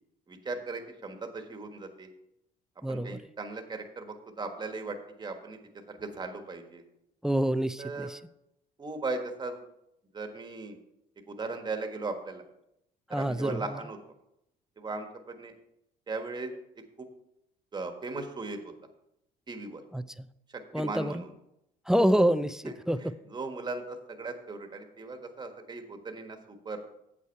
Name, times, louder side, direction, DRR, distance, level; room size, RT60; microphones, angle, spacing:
voice 1, 0.3-2.1 2.9-5.6 5.9-6.8 7.8-8.1 8.8-9.6 10.1-10.8 11.3-12.4 13.1-14.0 14.8-15.5 16.1-16.5 17.0-17.1 17.7-18.7 19.5-19.8 20.7-21.3 22.6-26.8, right 3 dB, 25° right, 5 dB, 1.4 m, -38 dB
voice 2, 2.8-3.2 7.2-8.2 13.1-13.8 19.9-20.3 20.7-21.2 21.9-23.1, equal, 5° right, 13 dB, 0.3 m, -27 dB
8.4 x 8.1 x 4.6 m, 0.81 s
cardioid pair, 110°, 17 cm